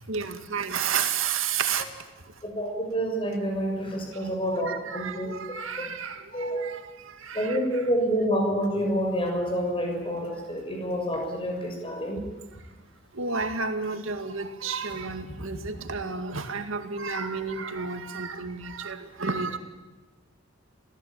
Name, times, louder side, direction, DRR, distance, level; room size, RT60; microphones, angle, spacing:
voice 1, 0.1-1.9 4.1-7.6 13.1-19.6, right 5 dB, 75° right, 7 dB, 2.2 m, -31 dB
voice 2, 2.4-5.3 6.3-6.6 7.3-12.2, equal, 25° left, 1 dB, 6.6 m, -28 dB
27.0 x 17.5 x 8.9 m, 1.1 s
head